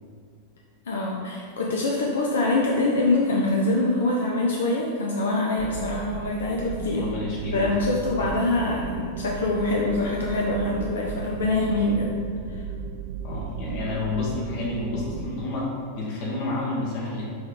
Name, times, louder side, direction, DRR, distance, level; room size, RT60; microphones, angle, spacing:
voice 1, 0.9-7.1 7.5-12.1 12.5-12.6, left 2 dB, 65° left, -2 dB, 0.6 m, -24 dB
sound 1, 5.6-15.3, right 6 dB, 50° right, 0.3 m, -35 dB
voice 2, 6.9-8.0 13.2-17.2, left 2 dB, 50° left, -4 dB, 1.1 m, -30 dB
6.3 x 3.2 x 5.0 m, 2.1 s
figure-of-eight pair, 90°, 0 cm